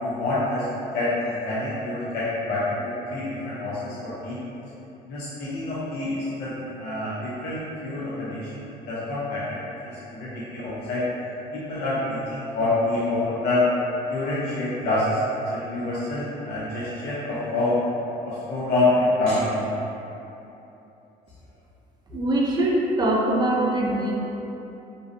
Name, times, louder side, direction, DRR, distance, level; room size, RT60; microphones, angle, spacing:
voice 1, 0.0-0.7 0.9-4.4 5.1-9.6 10.1-11.0 11.5-13.6 14.1-15.2 15.5-17.7 18.2-19.7, left 2 dB, 65° left, -9 dB, 0.5 m, -27 dB
voice 2, 22.1-24.2, right 1 dB, 25° right, -3 dB, 0.4 m, -23 dB
2.6 x 2.0 x 2.5 m, 2.9 s
cardioid pair, 110°, 17 cm